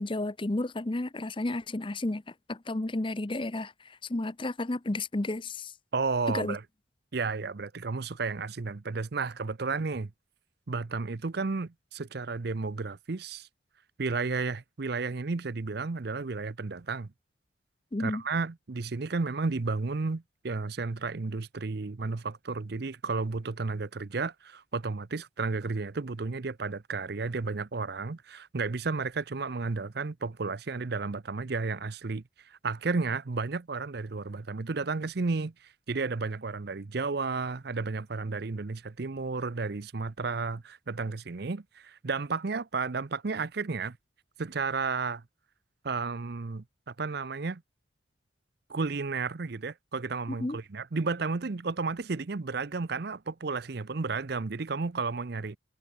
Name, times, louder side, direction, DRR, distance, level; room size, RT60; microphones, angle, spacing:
voice 1, 0.0-2.2 2.5-5.7 6.3-6.6 17.9-18.2 50.4-50.6, left 2 dB, 25° left, 0.7 m, -32 dB
voice 2, 5.9-6.6 7.1-10.1 10.7-13.5 14.0-17.1 18.0-35.5 35.9-44.0 44.4-45.2 45.8-47.6 48.7-55.6, right 4 dB, 55° right, 0.6 m, -32 dB
head